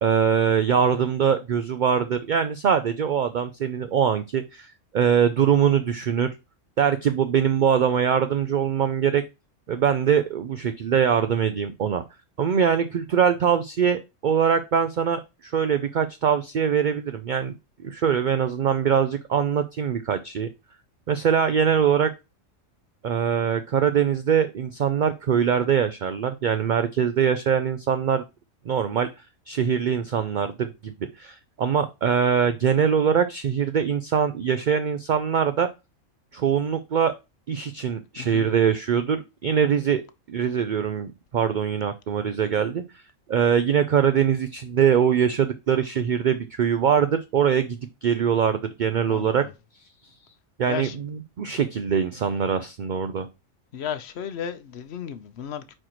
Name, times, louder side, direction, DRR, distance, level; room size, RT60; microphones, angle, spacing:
voice 1, 0.0-6.3 6.8-9.2 9.7-12.0 12.4-17.5 17.8-20.5 21.1-22.1 23.0-28.2 28.7-29.1 29.5-35.7 36.3-37.1 37.5-40.0 40.3-42.8 43.3-49.5 50.6-53.3, right 7 dB, 65° right, 0.4 m, -23 dB
voice 2, 38.2-38.5 49.1-49.5 50.7-50.9 53.7-55.7, left 8 dB, 60° left, 0.9 m, -34 dB
8.8 x 4.4 x 3.0 m
omnidirectional pair, 1.4 m